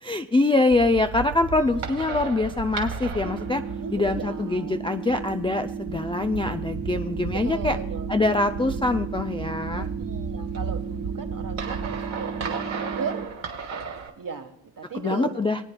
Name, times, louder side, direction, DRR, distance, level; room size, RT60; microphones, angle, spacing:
voice 1, 0.0-3.6 3.9-7.8 8.1-9.9 14.9-15.6, left 2 dB, 10° left, 5 dB, 0.3 m, -24 dB
sound 1, 0.7-14.1, right 5 dB, 80° right, 1.7 m, -34 dB
voice 2, 1.5-2.2 3.8-4.8 7.4-8.1 9.7-13.4 14.2-15.6, right 5 dB, 40° right, 7 dB, 1.4 m, -37 dB
sound 2, 3.2-13.2, right 5 dB, 20° right, 1.2 m, -34 dB
24.0 x 8.7 x 2.2 m, 0.77 s
cardioid pair, 70°, 48 cm